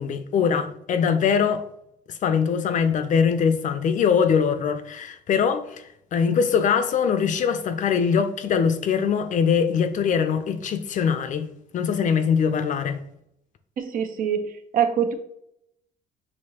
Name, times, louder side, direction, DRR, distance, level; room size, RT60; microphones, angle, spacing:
voice 1, 0.0-1.6 2.1-5.8 6.1-13.0, left 6 dB, 50° left, 0.5 m, -22 dB
voice 2, 13.8-15.1, right 8 dB, 55° right, 0.7 m, -24 dB
6.4 x 2.7 x 2.8 m
cardioid pair, 110°, 17 cm